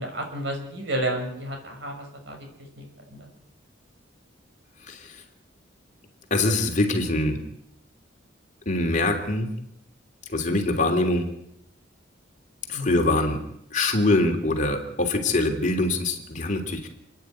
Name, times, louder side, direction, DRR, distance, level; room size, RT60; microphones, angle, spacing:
voice 1, 0.0-2.5 2.8-2.9 3.1-3.3 12.7-13.0, right 1 dB, 65° right, 4 dB, 5.9 m, -31 dB
voice 2, 4.8-5.2 6.3-7.4 8.6-9.5 10.3-11.3 12.7-13.4 13.7-16.9, left 2 dB, 40° left, 3 dB, 3.1 m, -24 dB
29.5 x 10.0 x 9.4 m, 0.75 s
head